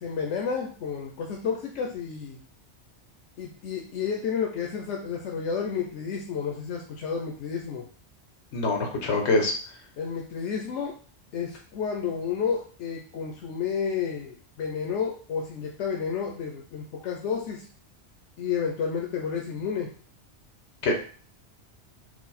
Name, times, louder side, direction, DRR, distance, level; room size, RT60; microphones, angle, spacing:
voice 1, 0.0-2.4 3.4-7.8 10.0-10.9 11.3-17.7 18.4-19.9, left 6 dB, 85° left, 1 dB, 0.9 m, -31 dB
voice 2, 8.5-9.5 20.8-20.9, left 2 dB, 70° left, 2 dB, 1.2 m, -24 dB
4.7 x 2.1 x 4.0 m, 0.42 s
omnidirectional pair, 1.2 m